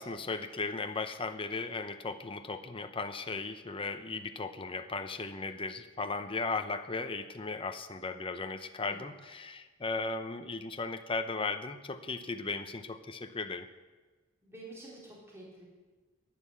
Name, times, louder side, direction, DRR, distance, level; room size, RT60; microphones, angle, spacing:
voice 1, 0.0-13.7, left 3 dB, 25° left, 8 dB, 0.7 m, -36 dB
voice 2, 14.4-15.6, right 2 dB, 15° right, -5 dB, 4.0 m, -49 dB
12.0 x 10.0 x 8.4 m, 1.3 s
head